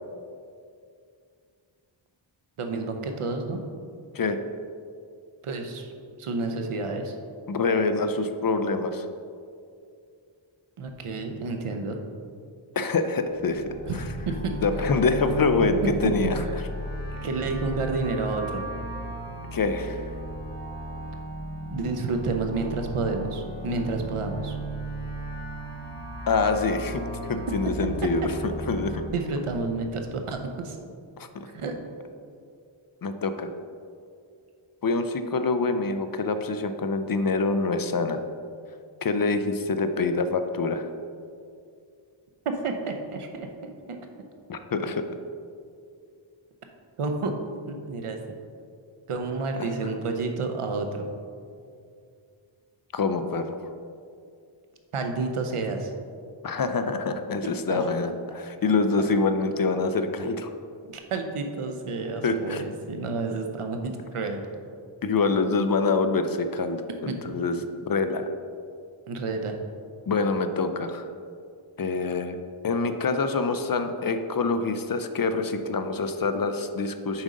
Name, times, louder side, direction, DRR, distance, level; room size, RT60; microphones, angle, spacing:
voice 1, 2.6-3.6 5.4-5.9 6.2-7.2 10.8-12.0 13.9-14.0 14.3-14.5 14.8-14.9 15.8-16.2 16.4-16.5 17.2-18.6 21.7-24.6 29.1-30.8 31.5-31.8 42.4-44.0 44.9-45.0 47.0-47.3 47.7-48.2 49.1-51.1 54.9-55.9 57.4-58.1 59.0-59.1 60.9-64.4 67.1-67.2 69.1-69.6, right 3 dB, 90° right, 4 dB, 0.8 m, -30 dB
voice 2, 7.5-9.0 12.8-13.6 14.6-16.4 19.5-20.0 26.3-27.0 27.3-28.3 28.7-29.0 31.2-31.3 33.0-33.5 34.8-38.2 39.0-40.9 44.5-45.0 49.6-49.7 52.9-53.6 56.4-60.5 62.2-62.6 65.0-67.5 67.9-68.3 70.1-71.1 71.8-72.4 72.6-77.2, left 3 dB, 45° left, 8 dB, 0.5 m, -25 dB
sound 1, 13.2-29.0, right 1 dB, 20° left, 1.2 m, -35 dB
7.2 x 5.2 x 3.7 m, 2.4 s
wide cardioid pair, 80°, 49 cm